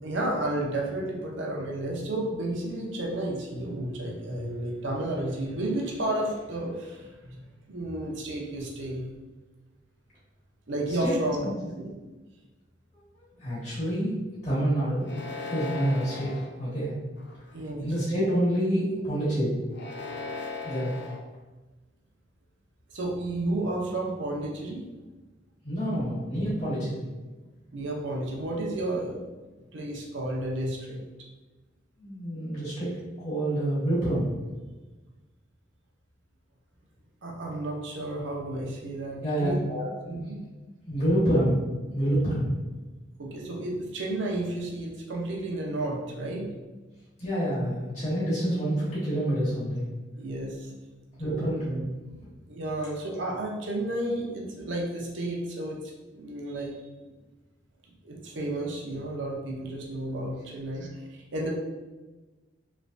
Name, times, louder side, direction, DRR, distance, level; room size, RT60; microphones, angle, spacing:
voice 1, 0.0-9.0 10.7-11.9 17.5-17.9 18.9-19.0 19.4-19.5 22.9-24.8 27.7-29.3 29.7-31.0 32.5-32.6 37.2-39.6 40.1-40.3 43.2-46.5 50.2-50.8 51.1-51.5 52.5-56.8 58.0-61.5, right 1 dB, 65° right, -2 dB, 0.7 m, -32 dB
voice 2, 13.4-14.1 14.4-15.1 15.5-16.3 16.6-16.9 17.8-19.5 20.6-20.9 25.6-26.9 32.0-32.9 33.2-34.3 39.2-40.2 40.9-42.5 47.2-49.9 51.2-51.9, right 1 dB, 35° left, -11 dB, 1.4 m, -27 dB
sound 1, 15.0-16.5 17.2-17.7 19.7-21.2, left 4 dB, 55° left, 0.5 m, -37 dB
3.2 x 3.1 x 2.6 m, 1.2 s
head